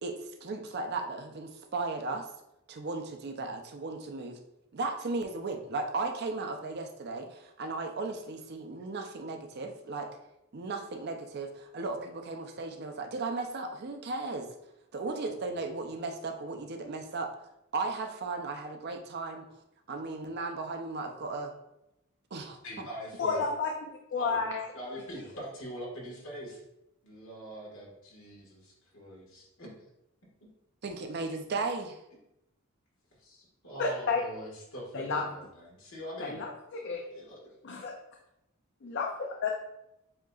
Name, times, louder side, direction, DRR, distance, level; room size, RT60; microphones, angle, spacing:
voice 1, 0.0-2.2 2.7-4.4 4.7-10.1 10.5-14.5 14.9-17.3 17.7-19.5 19.9-21.5 22.3-22.9 30.8-32.0, right 3 dB, 50° right, 5 dB, 0.5 m, -36 dB
voice 2, 22.6-23.4 24.2-24.4 24.7-26.6 27.0-28.4 28.9-29.7 33.2-36.3 37.1-37.4, equal, 80° left, -3 dB, 1.7 m, -43 dB
voice 3, 23.2-23.7 24.1-24.6 33.8-34.2 34.9-35.3 36.2-37.0 37.6-37.9 38.8-39.5, left 4 dB, 55° left, 1 dB, 0.5 m, -31 dB
7.4 x 2.9 x 2.3 m, 0.86 s
head